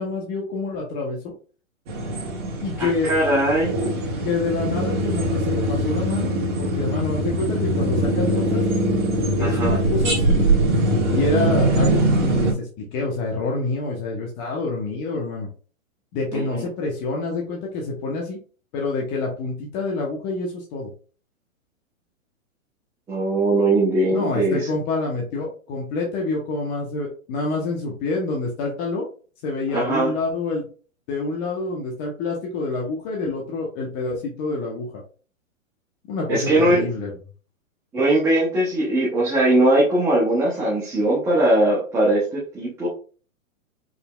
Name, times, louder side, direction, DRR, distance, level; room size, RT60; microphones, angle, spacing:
voice 1, 0.0-1.3 2.6-3.1 4.2-6.3 6.6-8.6 9.4-10.5 11.1-15.5 16.1-18.4 18.7-20.9 24.1-29.1 29.4-30.6 31.1-35.0 36.1-37.1, left 3 dB, 25° left, -1 dB, 0.8 m, -27 dB
sound 1, 1.9-12.5, right 1 dB, 30° right, 1.7 m, -22 dB
voice 2, 2.8-3.7 9.4-9.8 16.3-16.7 23.1-24.7 29.7-30.1 36.3-36.9 37.9-42.9, right 1 dB, 5° right, -5 dB, 0.6 m, -20 dB
4.9 x 3.2 x 2.2 m, 0.38 s
hypercardioid pair, 145°, 41 cm